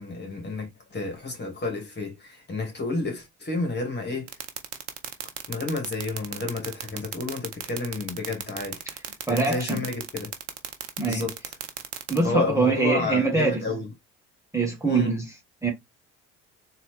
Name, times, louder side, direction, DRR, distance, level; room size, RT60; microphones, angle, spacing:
voice 1, 0.0-4.3 5.5-8.8 9.3-10.3 11.1-11.4 12.2-13.9 14.8-15.1, left 3 dB, 30° left, 2.1 m, -31 dB
sound 1, 4.3-12.2, right 12 dB, 85° right, 0.8 m, -33 dB
voice 2, 9.3-9.8 11.0-11.3 12.1-13.6 14.5-15.4 15.6-15.7, right 3 dB, 10° right, 1.6 m, -24 dB
3.9 x 3.0 x 3.3 m
hypercardioid pair, 60°, 35 cm